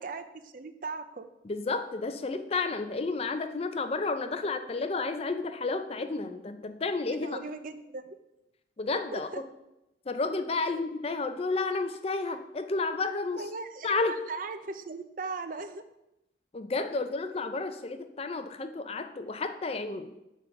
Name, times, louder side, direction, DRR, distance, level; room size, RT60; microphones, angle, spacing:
voice 1, 0.0-1.3 7.2-8.0 9.1-9.4 10.7-10.8 13.4-15.8, right 3 dB, 45° right, 10 dB, 0.5 m, -38 dB
voice 2, 1.4-7.4 8.8-9.4 10.1-13.5 13.8-14.2 16.5-20.1, left 3 dB, 30° left, 9 dB, 0.4 m, -31 dB
8.0 x 3.6 x 5.8 m, 0.91 s
head